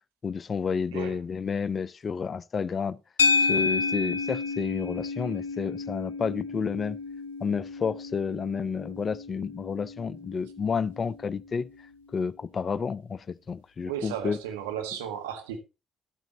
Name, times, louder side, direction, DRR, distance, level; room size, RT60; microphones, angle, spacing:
voice 1, 0.2-3.0 3.4-7.0 7.4-11.7 12.1-14.4, left 6 dB, 40° left, 0.5 m, -30 dB
sound 1, 3.2-11.6, left 4 dB, 85° left, 0.7 m, -31 dB
voice 2, 13.9-15.6, right 9 dB, 80° right, 1.5 m, -34 dB
12.0 x 9.0 x 2.9 m
figure-of-eight pair, 45°, 0 cm